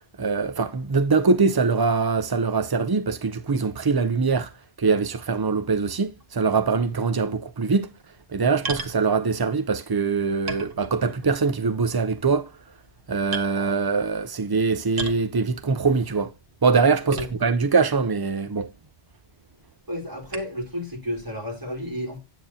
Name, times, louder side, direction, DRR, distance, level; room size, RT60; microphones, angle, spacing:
voice 1, 0.2-4.5 4.8-7.9 8.3-12.5 13.1-16.3 16.6-18.7, right 4 dB, 40° right, 0.3 m, -23 dB
sound 1, 8.6-9.0 9.9-10.0 10.5-11.3 11.7-12.0 12.7-12.9 13.3-13.5 14.9-15.3 17.1-17.7 18.4-18.5 20.3-20.6, right 3 dB, 55° right, 1.5 m, -34 dB
voice 2, 19.9-22.2, equal, 20° right, 3.0 m, -31 dB
9.1 x 8.7 x 2.8 m
omnidirectional pair, 1.1 m